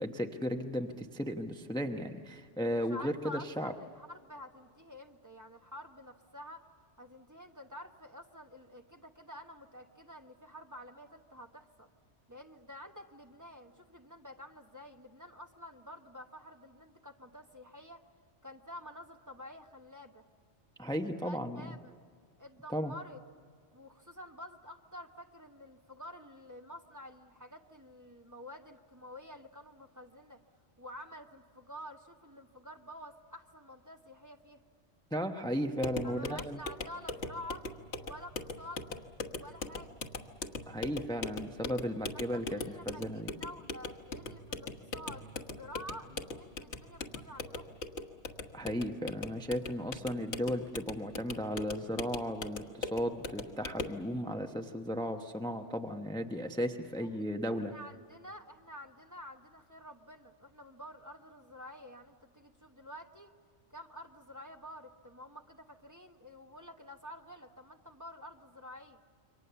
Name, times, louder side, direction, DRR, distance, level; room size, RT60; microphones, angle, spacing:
voice 1, 0.0-3.7 20.8-21.7 22.7-22.9 35.1-36.6 40.6-42.6 42.9-43.3 48.5-57.7, equal, 5° left, 4 dB, 0.9 m, -35 dB
voice 2, 2.6-6.6 7.0-11.9 12.3-18.0 18.4-20.2 21.2-21.9 22.4-23.2 23.7-30.4 30.8-34.6 36.0-37.7 38.0-38.8 39.2-40.0 42.1-47.8 57.0-63.3 63.7-69.0, left 1 dB, 15° right, 3 dB, 1.1 m, -49 dB
sound 1, 35.8-54.0, left 3 dB, 85° left, 1.6 m, -41 dB
28.0 x 24.0 x 7.0 m, 2.1 s
omnidirectional pair, 1.1 m